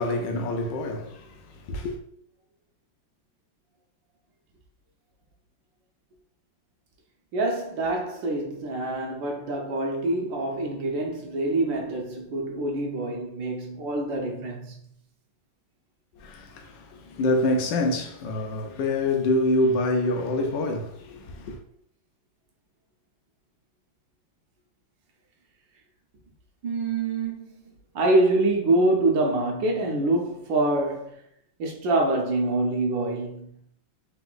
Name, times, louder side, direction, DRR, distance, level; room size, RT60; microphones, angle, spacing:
voice 1, 0.0-1.3 1.6-2.0 16.2-21.6, left 2 dB, 75° left, 1.2 m, -26 dB
voice 2, 7.3-14.8 26.6-27.4 27.9-31.2 31.6-33.6, right 2 dB, 75° right, 1.4 m, -25 dB
3.8 x 2.6 x 3.8 m
omnidirectional pair, 2.2 m